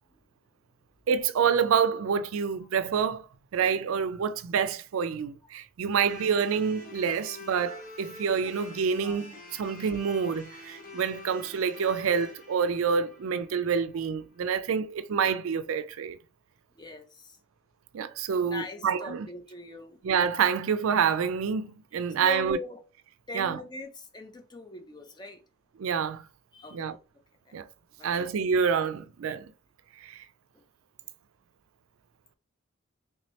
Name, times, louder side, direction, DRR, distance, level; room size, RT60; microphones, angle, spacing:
voice 1, 1.1-3.3 3.5-16.2 17.9-19.3 20.0-22.6 23.3-23.6 25.8-26.3 26.7-27.0 27.5-27.7 28.0-29.5 30.0-30.2, right 6 dB, 75° right, 0.4 m, -27 dB
sound 1, 6.1-14.2, left 3 dB, 40° left, 1.1 m, -46 dB
voice 2, 16.8-17.4 18.4-20.0 22.2-22.8 23.3-25.4 26.5-26.9 27.5-27.6 28.0-28.3 28.7-28.8 30.5-30.6, left 3 dB, 20° left, 0.5 m, -41 dB
3.4 x 2.8 x 3.1 m
head